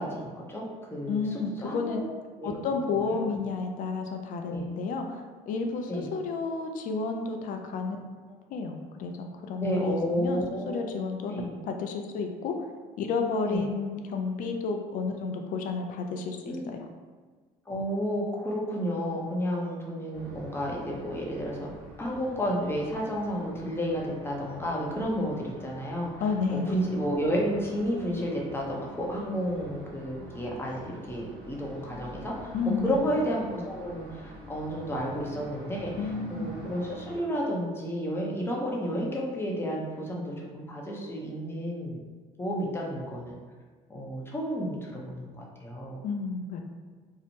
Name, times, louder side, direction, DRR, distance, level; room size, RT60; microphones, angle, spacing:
voice 1, 0.0-2.0 2.4-2.7 3.1-3.2 4.5-4.7 5.9-6.1 9.6-10.9 11.3-11.5 13.5-13.7 16.5-16.7 17.7-21.7 22.0-26.1 26.5-32.5 32.8-35.9 36.3-42.0 42.4-43.4 43.9-46.0, equal, 15° left, -2 dB, 0.7 m, -31 dB
voice 2, 1.1-2.0 2.4-8.0 8.5-11.3 11.6-12.7 13.0-16.8 25.2-25.3 26.2-26.7 32.5-32.9 36.0-36.5 46.0-46.6, left 4 dB, 60° left, 4 dB, 0.4 m, -31 dB
sound 1, 20.1-37.2, equal, 65° right, 1.0 m, -46 dB
2.7 x 2.0 x 2.8 m, 1.4 s
supercardioid pair, 80°, 16 cm